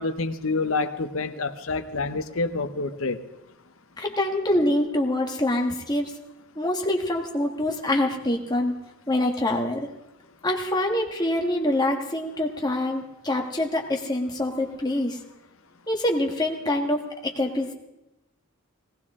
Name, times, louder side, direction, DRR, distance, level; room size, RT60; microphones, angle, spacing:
voice 1, 0.0-3.2, left 3 dB, 70° left, 9 dB, 0.9 m, -27 dB
voice 2, 4.0-6.1 6.5-8.8 9.1-9.9 10.4-15.2 15.9-17.7, left 1 dB, 20° left, 1 dB, 1.6 m, -25 dB
19.5 x 18.0 x 3.7 m, 0.92 s
head